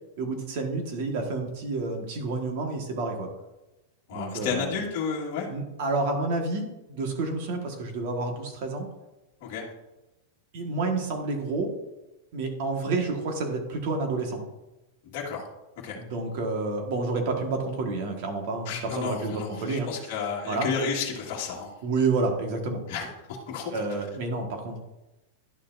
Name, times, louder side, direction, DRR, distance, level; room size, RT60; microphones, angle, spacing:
voice 1, 0.2-3.3 4.1-4.7 5.5-8.9 10.5-11.7 12.3-14.4 16.0-20.1 20.4-20.7 21.8-22.8 23.7-24.8, right 3 dB, 45° right, 3 dB, 1.6 m, -29 dB
voice 2, 4.1-5.5 9.4-9.6 15.0-15.5 15.8-16.0 18.6-21.7 22.9-23.1 23.5-24.0, left 5 dB, 40° left, -3 dB, 1.6 m, -32 dB
11.0 x 6.8 x 2.6 m, 0.99 s
supercardioid pair, 175°, 0 cm